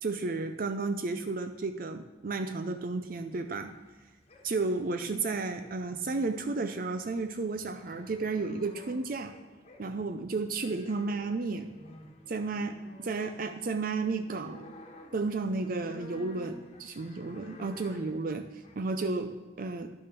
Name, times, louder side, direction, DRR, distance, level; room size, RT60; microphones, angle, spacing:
voice 1, 0.0-3.7 4.4-9.3 9.8-11.7 12.3-14.7 15.1-19.9, right 3 dB, 50° right, 8 dB, 0.5 m, -33 dB
sound 1, 3.3-19.2, left 1 dB, 35° left, 1.3 m, -53 dB
10.5 x 6.2 x 6.0 m, 1.2 s
head